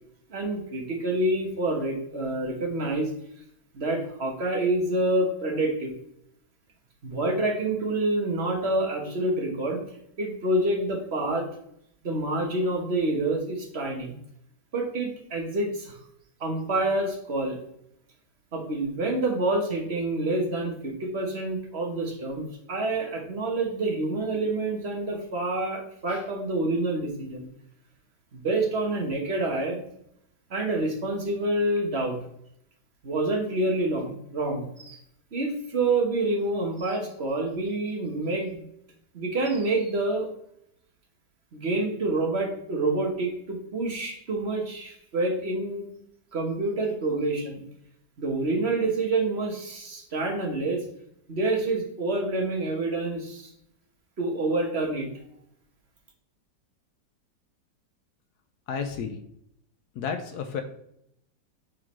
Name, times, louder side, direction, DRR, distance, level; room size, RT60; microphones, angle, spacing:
voice 1, 0.3-3.1 3.7-5.9 7.0-9.8 10.2-11.4 12.0-14.1 14.7-16.0 16.4-17.6 18.5-27.5 28.3-29.8 30.5-32.2 33.0-35.0 35.3-38.6 39.1-40.3 41.5-45.9 46.3-47.6 48.2-50.8 51.3-53.5 54.2-55.1, right 2 dB, 40° right, 1 dB, 1.3 m, -27 dB
voice 2, 58.7-59.2 59.9-60.6, left 6 dB, 70° left, 7 dB, 1.1 m, -31 dB
9.7 x 3.8 x 3.1 m, 0.73 s
omnidirectional pair, 1.9 m